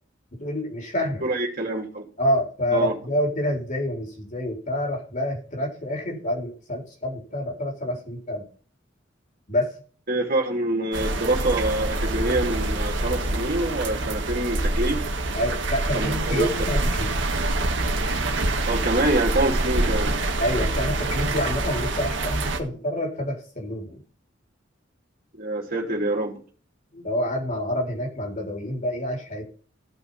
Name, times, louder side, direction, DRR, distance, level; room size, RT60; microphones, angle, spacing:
voice 1, 0.4-1.3 2.2-8.5 9.5-9.8 15.3-17.1 20.4-24.0 26.9-29.4, left 1 dB, 40° left, 4.2 m, -27 dB
voice 2, 1.2-2.0 2.7-2.9 10.1-15.0 15.9-16.5 18.7-20.2 25.3-26.4, right 2 dB, 50° right, 3.2 m, -26 dB
sound 1, 10.9-22.6, right 2 dB, 65° right, 1.7 m, -26 dB
15.0 x 5.8 x 5.7 m
head